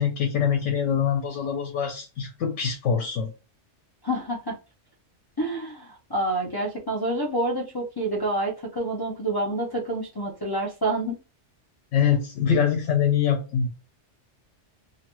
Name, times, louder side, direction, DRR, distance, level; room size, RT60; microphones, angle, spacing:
voice 1, 0.0-3.3 11.9-13.7, left 7 dB, 80° left, 3 dB, 0.9 m, -24 dB
voice 2, 4.0-4.6 5.4-11.2, right 1 dB, 35° left, -4 dB, 0.3 m, -28 dB
2.8 x 2.2 x 2.9 m, 0.30 s
omnidirectional pair, 1.2 m